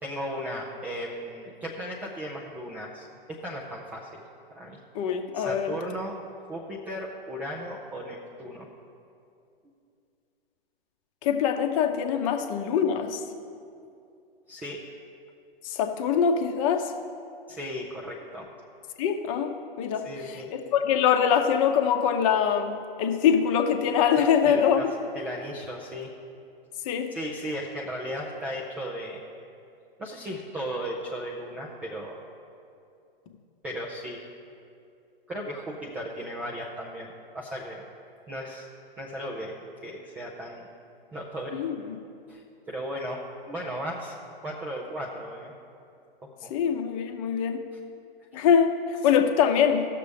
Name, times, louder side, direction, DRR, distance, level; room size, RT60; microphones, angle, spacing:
voice 1, 0.0-4.2 4.5-4.8 5.3-6.2 6.5-8.7 14.5-14.8 17.5-18.5 20.0-20.5 24.2-24.9 25.1-26.1 27.1-29.2 30.0-32.2 33.6-34.3 35.3-37.8 38.3-38.7 39.0-39.5 39.8-40.7 41.1-41.6 42.3-43.2 43.5-44.1 44.4-45.5 46.2-46.5 48.3-48.4, equal, 5° right, -3 dB, 0.3 m, -36 dB
voice 2, 4.9-5.7 11.2-13.2 15.6-16.9 19.0-24.8 26.8-27.1 41.5-42.0 46.5-47.6 48.3-49.9, left 7 dB, 35° left, 6 dB, 0.8 m, -24 dB
16.0 x 6.7 x 3.4 m, 2.5 s
figure-of-eight pair, 115°, 30 cm